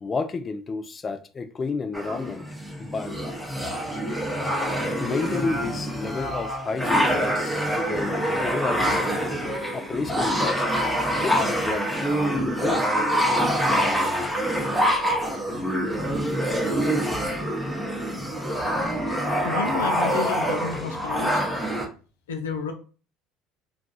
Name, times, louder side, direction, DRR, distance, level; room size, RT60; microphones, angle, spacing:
voice 1, 0.0-2.5 2.8-3.1 5.0-8.9 9.7-10.8 11.1-11.9 12.3-12.9 13.9-14.0 15.5-15.6, left 4 dB, 30° left, 0.4 m, -31 dB
sound 1, 1.9-21.9, equal, ahead, 0.9 m, -25 dB
voice 2, 19.4-21.4 22.3-22.7, left 5 dB, 90° left, 0.5 m, -30 dB
2.4 x 2.3 x 3.9 m
hypercardioid pair, 75°, 0 cm